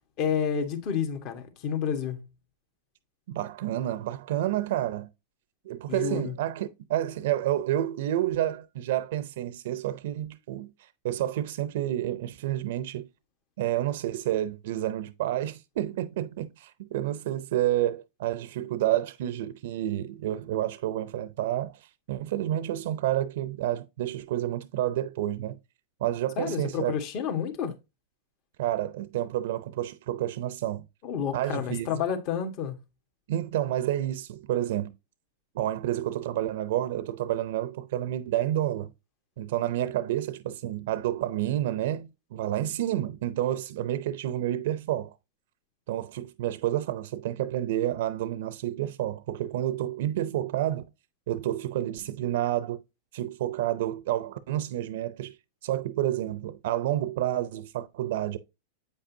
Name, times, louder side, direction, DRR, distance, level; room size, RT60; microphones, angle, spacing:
voice 1, 0.2-2.2 5.9-6.3 26.4-27.7 31.0-32.8, left 7 dB, 50° left, 1.5 m, -30 dB
voice 2, 3.3-5.1 5.6-13.1 13.6-21.8 22.1-25.6 26.0-27.0 28.6-30.8 31.3-32.0 33.3-34.9 35.5-38.9 39.4-45.1 45.9-50.8 51.3-52.8 53.1-55.4 55.6-58.4, right 13 dB, 70° right, 0.5 m, -29 dB
8.2 x 5.3 x 2.7 m
hypercardioid pair, 115°, 0 cm